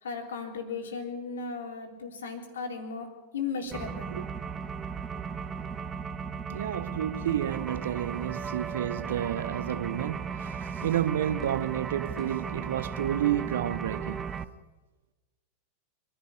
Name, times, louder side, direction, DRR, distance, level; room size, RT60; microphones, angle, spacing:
voice 1, 0.0-3.1 3.3-4.1, left 5 dB, 65° left, 3.4 m, -36 dB
sound 1, 3.7-14.4, right 6 dB, 20° right, 0.9 m, -36 dB
voice 2, 6.5-14.3, right 11 dB, 60° right, 0.8 m, -30 dB
26.0 x 11.0 x 10.0 m
figure-of-eight pair, 90°, 0 cm